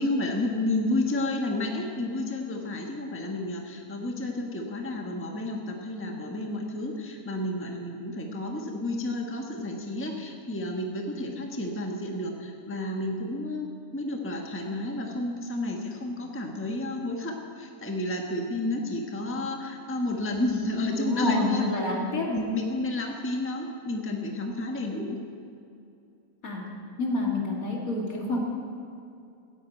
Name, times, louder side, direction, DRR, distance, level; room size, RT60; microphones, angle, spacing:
voice 1, 0.0-21.7 22.3-25.2, left 1 dB, 10° left, 1 dB, 1.2 m, -31 dB
voice 2, 20.9-22.3 26.4-26.6 27.0-28.4, left 2 dB, 65° left, -1 dB, 2.9 m, -27 dB
15.5 x 8.8 x 9.0 m, 2.6 s
omnidirectional pair, 1.6 m